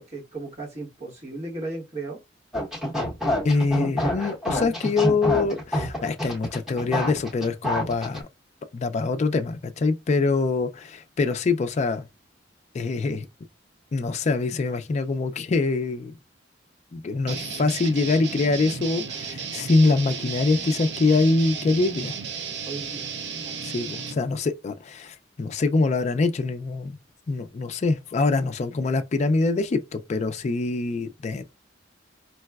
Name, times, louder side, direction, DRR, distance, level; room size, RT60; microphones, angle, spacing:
voice 1, 0.1-2.2 22.7-23.1 23.4-23.6, right 2 dB, 35° right, 1.0 m, -35 dB
sound 1, 2.5-8.2, equal, ahead, 0.9 m, -27 dB
voice 2, 3.4-8.2 8.7-12.1 12.7-13.3 13.9-16.2 16.9-22.1 23.6-27.0 27.3-31.4, left 3 dB, 35° left, 0.3 m, -24 dB
sound 2, 17.3-24.1, right 6 dB, 65° right, 0.5 m, -34 dB
4.5 x 2.1 x 2.3 m
head